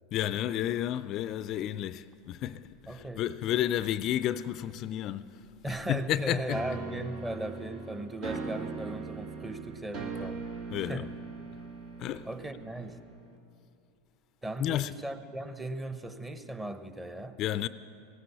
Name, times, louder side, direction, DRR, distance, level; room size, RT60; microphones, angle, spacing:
voice 1, 0.1-5.4 5.7-6.7 8.3-8.4 10.7-11.1 12.0-12.3 14.6-14.9 17.4-17.7, left 12 dB, 50° left, 0.4 m, -31 dB
voice 2, 2.9-3.2 5.6-10.4 10.8-11.1 12.2-13.0 14.4-17.4, right 1 dB, 15° right, 1.0 m, -37 dB
sound 1, 6.5-13.4, right 4 dB, 60° right, 2.1 m, -40 dB
16.5 x 9.8 x 8.2 m
hypercardioid pair, 105°, 0 cm